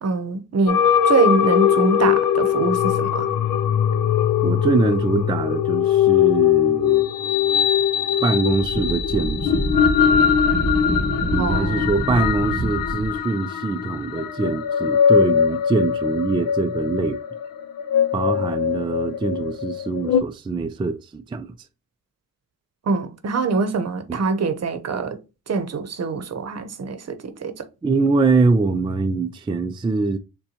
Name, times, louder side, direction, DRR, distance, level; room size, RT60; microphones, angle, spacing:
voice 1, 0.0-3.3 11.4-11.9 22.9-25.2 25.5-27.7, right 4 dB, 50° right, 0.8 m, -24 dB
sound 1, 0.7-20.2, left 9 dB, 75° left, 0.6 m, -21 dB
voice 2, 4.4-7.1 8.2-9.7 11.3-17.2 18.1-21.6 24.1-24.2 27.8-30.2, right 3 dB, 15° right, 0.3 m, -23 dB
Wind, 8.5-13.2, right 1 dB, 10° left, 1.6 m, -27 dB
6.6 x 2.2 x 2.8 m
cardioid pair, 75°, 34 cm